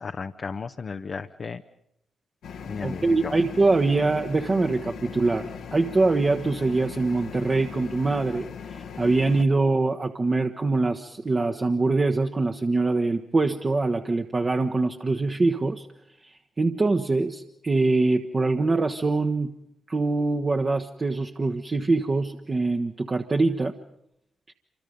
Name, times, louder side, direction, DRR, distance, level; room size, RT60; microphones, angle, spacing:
voice 1, 0.0-1.6 2.7-3.3, left 5 dB, 50° left, 7 dB, 0.8 m, -34 dB
sound 1, 2.4-9.5, left 6 dB, 75° left, 1.4 m, -39 dB
voice 2, 2.8-15.9 16.2-19.5 19.9-23.7, right 3 dB, 40° right, 5 dB, 1.3 m, -24 dB
27.5 x 25.5 x 5.3 m, 0.77 s
hypercardioid pair, 40°, 0 cm